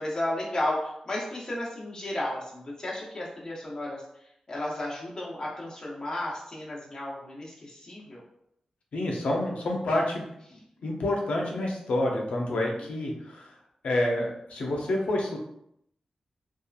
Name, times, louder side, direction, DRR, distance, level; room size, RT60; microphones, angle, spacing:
voice 1, 0.0-4.0 4.5-8.2, left 1 dB, 35° left, -5 dB, 0.9 m, -33 dB
voice 2, 8.9-10.2 10.8-13.5 13.8-15.4, left 1 dB, 80° left, 0 dB, 0.6 m, -28 dB
2.8 x 2.3 x 2.3 m, 0.75 s
wide cardioid pair, 85°, 2 cm